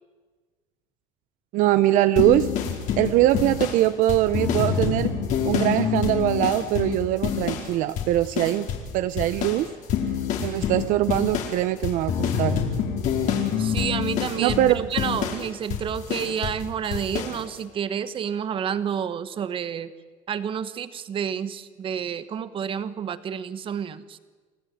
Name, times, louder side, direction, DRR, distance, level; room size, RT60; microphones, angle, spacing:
voice 1, 1.5-2.5 3.0-5.1 5.4-8.7 8.9-9.7 10.4-12.6 14.4-14.9, right 14 dB, 65° right, 12 dB, 0.8 m, -22 dB
sound 1, 2.2-7.7 8.0-8.9 9.2-16.6 16.9-17.4, left 8 dB, 65° left, 4.7 m, -27 dB
voice 2, 13.6-19.9 20.3-24.2, right 8 dB, 40° right, 13 dB, 1.3 m, -30 dB
29.5 x 15.5 x 9.5 m, 1.4 s
cardioid pair, 135°, 14 cm